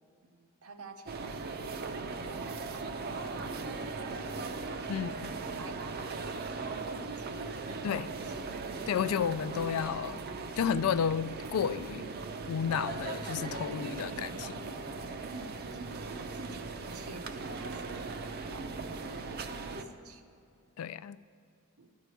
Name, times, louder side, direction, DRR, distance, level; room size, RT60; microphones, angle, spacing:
voice 1, 0.2-2.9 4.0-5.2 5.4-7.3 7.6-8.4 15.2-20.2 21.8-21.9, right 3 dB, 85° right, 6 dB, 0.8 m, -51 dB
sound 1, 1.1-19.8, right 3 dB, 45° right, 0.5 m, -39 dB
voice 2, 4.9-5.3 7.8-8.1 8.9-10.2 10.6-12.1 12.5-14.6 20.8-21.2, left 7 dB, 75° left, 16 dB, 0.3 m, -32 dB
13.0 x 4.7 x 8.1 m, 2.3 s
head